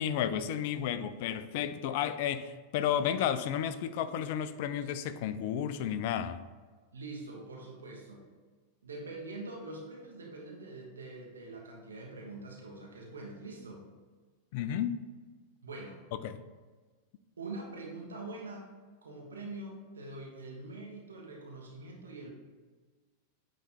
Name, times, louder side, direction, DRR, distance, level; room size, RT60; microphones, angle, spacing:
voice 1, 0.0-6.4 14.5-15.0 16.2-16.4, left 9 dB, 50° left, 12 dB, 0.4 m, -32 dB
voice 2, 6.9-8.3 8.8-13.8 15.6-16.0 17.4-18.6 19.0-22.3, right 2 dB, 70° right, -1 dB, 1.1 m, -44 dB
8.7 x 3.1 x 4.3 m, 1.4 s
figure-of-eight pair, 90°, 0 cm